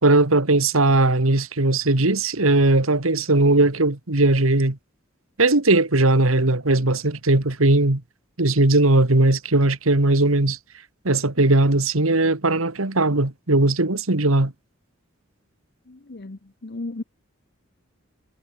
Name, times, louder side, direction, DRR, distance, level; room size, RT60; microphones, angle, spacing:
voice 1, 0.0-4.8 5.4-8.0 8.4-10.6 11.0-14.5, right 2 dB, 90° right, 2.1 m, -19 dB
voice 2, 15.9-17.0, left 2 dB, 55° left, 0.9 m, -35 dB
head